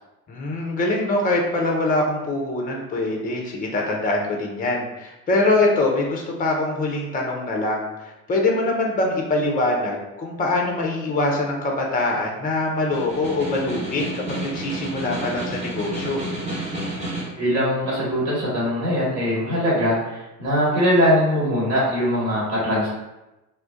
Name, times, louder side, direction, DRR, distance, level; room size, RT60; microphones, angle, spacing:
voice 1, 0.3-16.2, left 2 dB, 15° left, 0 dB, 0.6 m, -23 dB
Snare drum, 12.8-17.4, right 1 dB, 15° right, 1.0 m, -31 dB
voice 2, 17.4-22.9, equal, 45° right, -7 dB, 1.3 m, -21 dB
2.3 x 2.2 x 3.7 m, 0.99 s
figure-of-eight pair, 60°, 49 cm